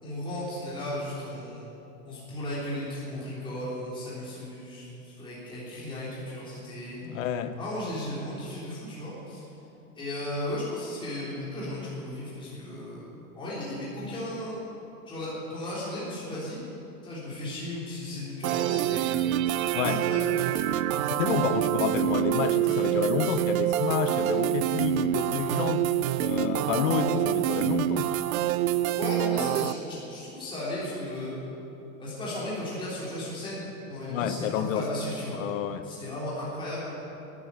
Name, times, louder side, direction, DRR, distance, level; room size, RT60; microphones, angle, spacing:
voice 1, 0.0-1.7 2.0-7.2 7.6-9.4 9.9-13.1 13.3-14.6 15.1-16.6 17.0-19.0 19.4-19.5 19.8-20.7 28.9-31.4 32.0-35.4 35.8-36.9, left 1 dB, 10° left, -8 dB, 3.5 m, -35 dB
voice 2, 7.0-7.6 19.7-20.0 20.9-25.9 26.2-28.1 34.1-34.9 35.3-35.9, left 9 dB, 60° left, 11 dB, 1.1 m, -29 dB
sound 1, 18.4-29.7, right 13 dB, 65° right, 0.6 m, -26 dB
13.5 x 10.5 x 9.5 m, 2.9 s
supercardioid pair, 170°, 45 cm